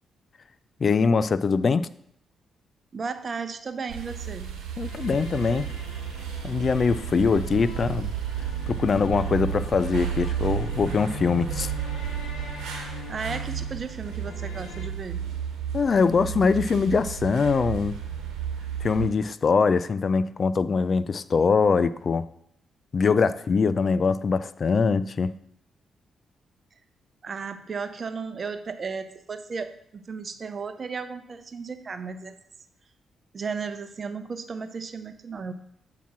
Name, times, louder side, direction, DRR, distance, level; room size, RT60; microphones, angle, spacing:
voice 1, 0.8-1.9 4.8-5.7 6.4-8.1 8.7-11.7 15.7-18.0 18.8-22.3 22.9-25.3, left 5 dB, 50° left, 15 dB, 0.3 m, -23 dB
voice 2, 2.9-4.5 13.1-15.2 27.2-32.4 33.3-35.5, right 5 dB, 50° right, 10 dB, 0.6 m, -34 dB
sound 1, 3.9-19.1, right 9 dB, 80° right, 1.1 m, -33 dB
sound 2, 4.8-14.9, left 4 dB, 85° left, 0.9 m, -42 dB
8.4 x 2.9 x 5.9 m, 0.73 s
supercardioid pair, 50°, 0 cm